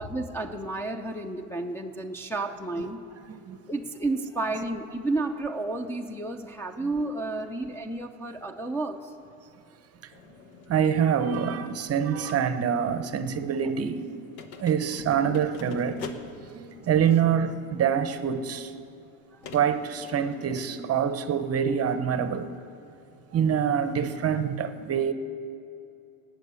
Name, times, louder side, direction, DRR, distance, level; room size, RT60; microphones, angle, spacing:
voice 1, 0.0-3.0 3.7-9.1 13.6-13.7 15.2-15.4 17.1-17.2 19.3-19.5, right 2 dB, 5° left, 0 dB, 0.6 m, -32 dB
voice 2, 3.3-3.6 10.7-14.1 14.6-16.1 16.5-18.7 19.5-22.5 23.3-25.1, right 8 dB, 35° right, 11 dB, 0.8 m, -26 dB
sound 1, 10.1-17.4 18.3-18.4 19.4-20.8, left 5 dB, 80° left, 1.3 m, -46 dB
18.5 x 6.5 x 8.3 m, 2.7 s
supercardioid pair, 110°, 43 cm